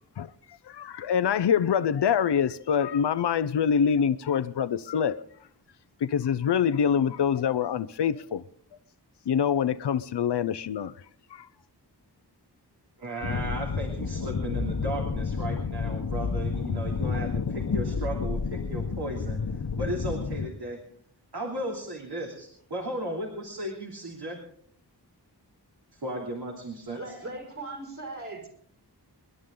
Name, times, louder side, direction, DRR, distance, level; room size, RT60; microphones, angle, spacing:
voice 1, 0.2-5.2 6.0-8.4 9.3-10.9 11.3-11.5, left 7 dB, 80° left, 0.6 m, -25 dB
voice 2, 13.0-20.8 21.3-24.4 25.9-27.0, right 1 dB, 70° right, 3.1 m, -35 dB
sound 1, 13.2-20.5, left 5 dB, 55° left, 1.1 m, -30 dB
voice 3, 26.9-28.5, right 2 dB, 50° right, 5.9 m, -39 dB
27.5 x 11.0 x 3.8 m
wide cardioid pair, 70°, 41 cm